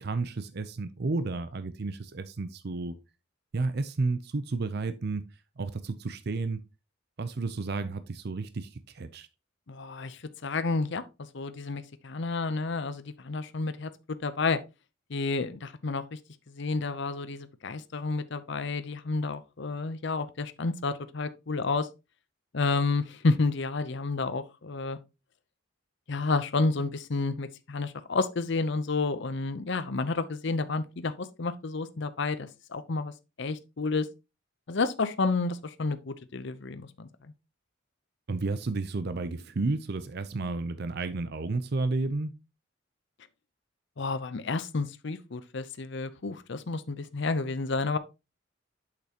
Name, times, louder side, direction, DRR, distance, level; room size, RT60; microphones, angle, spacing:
voice 1, 0.0-3.0 3.5-5.2 5.6-6.6 7.2-9.3 38.3-42.3, right 3 dB, 55° right, 0.6 m, -32 dB
voice 2, 9.7-11.0 11.3-13.9 14.2-14.6 15.1-16.2 16.5-21.9 22.5-25.0 26.1-33.1 33.4-34.1 34.7-37.1 44.0-48.0, left 3 dB, 60° left, 0.7 m, -30 dB
8.2 x 6.7 x 2.9 m
head